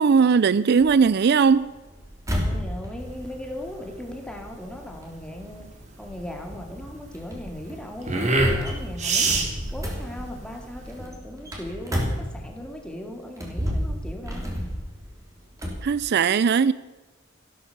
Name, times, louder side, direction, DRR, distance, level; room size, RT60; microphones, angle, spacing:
voice 1, 0.0-1.7 15.8-16.7, right 5 dB, 55° right, 0.4 m, -19 dB
sound 1, 0.8-12.8 13.3-15.9, equal, 15° right, 3.2 m, -32 dB
voice 2, 2.3-5.7 6.0-9.4 9.7-14.6, left 1 dB, 5° left, 2.2 m, -38 dB
sound 2, 3.0-11.0, right 3 dB, 40° right, 2.5 m, -28 dB
14.5 x 12.5 x 6.7 m
head